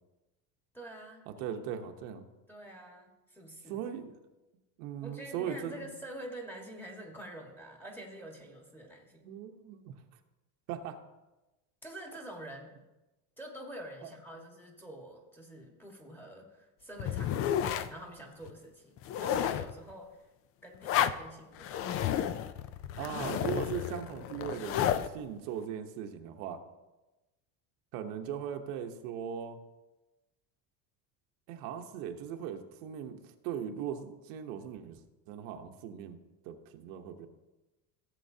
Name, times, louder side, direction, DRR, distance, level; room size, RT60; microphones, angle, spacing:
voice 1, 0.7-1.4 2.5-3.8 5.0-9.3 11.8-12.7 13.4-17.6 17.9-20.3 20.6-22.2 23.0-23.4, right 1 dB, 5° left, 0 dB, 1.6 m, -47 dB
voice 2, 1.3-2.3 3.7-4.2 4.8-5.9 9.2-10.0 10.7-11.0 23.0-26.6 27.9-29.6 31.5-35.0 35.3-36.2 36.4-37.3, right 8 dB, 75° right, 5 dB, 1.1 m, -39 dB
sound 1, 17.0-17.9 18.5-18.6 19.0-19.7 20.8-21.2 21.6-25.1, left 10 dB, 35° left, 0.4 m, -31 dB
16.5 x 7.7 x 2.8 m, 1.1 s
cardioid pair, 145°, 39 cm